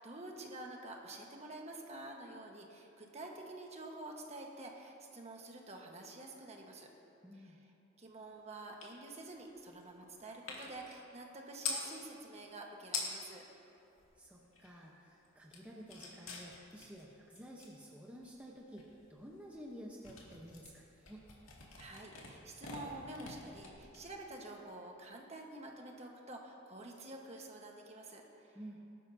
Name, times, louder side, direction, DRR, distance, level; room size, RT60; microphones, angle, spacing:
voice 1, 0.0-6.9 7.4-7.5 8.0-13.4 21.8-28.6, right 2 dB, 35° right, 1 dB, 1.3 m, -49 dB
voice 2, 7.2-7.6 14.2-21.2 28.5-28.8, equal, 5° right, -3 dB, 0.9 m, -52 dB
sound 1, 8.8-9.0 9.2-11.9 12.6-12.7 12.8-13.4 13.8-14.9 15.2-24.5, left 4 dB, 85° left, 2.2 m, -46 dB
19.5 x 12.0 x 2.7 m, 2.7 s
head